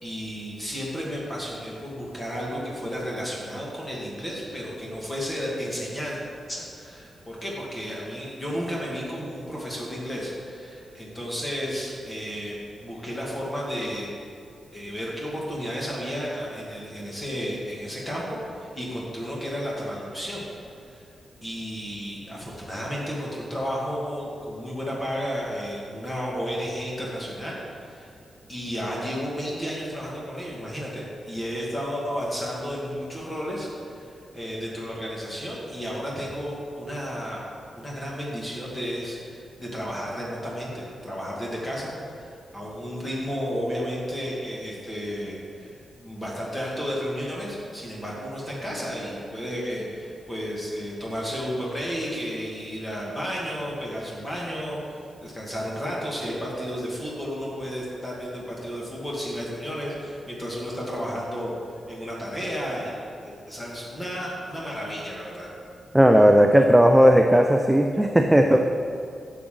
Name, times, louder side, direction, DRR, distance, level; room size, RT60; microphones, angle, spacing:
voice 1, 0.0-6.2 6.5-14.1 14.7-20.5 20.8-21.0 21.4-28.1 28.5-37.5 37.8-61.5 61.9-65.5, equal, 10° left, -5 dB, 2.0 m, -32 dB
voice 2, 65.9-68.6, equal, 5° right, 3 dB, 0.4 m, -16 dB
11.0 x 7.2 x 3.8 m, 2.4 s
wide cardioid pair, 170°, 0 cm